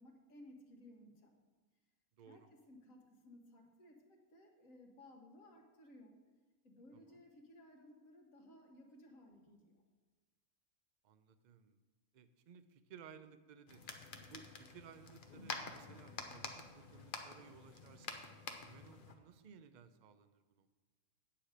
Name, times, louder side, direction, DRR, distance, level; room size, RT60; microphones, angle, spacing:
voice 1, 0.0-1.4 2.2-6.2 6.6-9.8, left 1 dB, 75° left, 2 dB, 1.8 m, -59 dB
voice 2, 2.2-2.5 6.9-7.1 11.0-11.8 12.1-13.9 14.2-18.2 18.6-20.7, right 7 dB, 55° right, 10 dB, 0.5 m, -59 dB
sound 1, 13.7-19.1, left 4 dB, 45° left, 0.9 m, -48 dB
8.7 x 8.7 x 4.9 m, 1.3 s
omnidirectional pair, 1.4 m